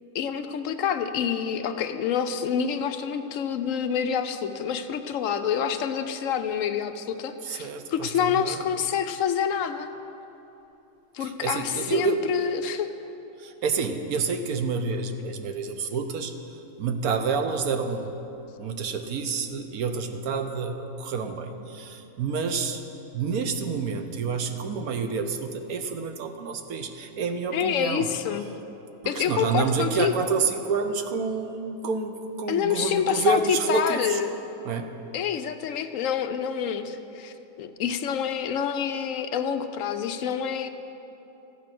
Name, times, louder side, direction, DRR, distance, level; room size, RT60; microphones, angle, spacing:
voice 1, 0.1-9.9 11.1-12.9 27.5-28.4 29.1-30.1 32.5-34.3 35.1-40.7, left 8 dB, 70° left, 8 dB, 1.0 m, -27 dB
voice 2, 7.4-8.6 11.2-12.2 13.4-16.3 16.8-18.2 18.6-22.8 23.1-28.1 29.0-34.2 34.6-34.9, right 5 dB, 90° right, 7 dB, 1.3 m, -28 dB
14.5 x 8.9 x 6.0 m, 3.0 s
omnidirectional pair, 1.5 m